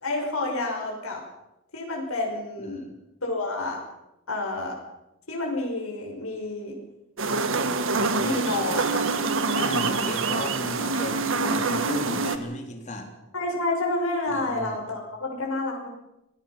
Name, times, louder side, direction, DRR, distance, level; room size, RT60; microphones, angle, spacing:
voice 1, 0.0-1.2 1.7-2.9 3.2-3.8 4.3-4.7 5.3-6.8 8.2-9.0 13.3-15.9, left 2 dB, 80° left, 1 dB, 6.0 m, -29 dB
voice 2, 2.6-2.9 7.8-8.5 9.6-13.1 14.3-14.8, left 1 dB, 35° left, 4 dB, 3.7 m, -35 dB
sound 1, 7.2-12.4, right 3 dB, 65° right, 1.8 m, -25 dB
26.5 x 20.5 x 5.8 m, 0.90 s
head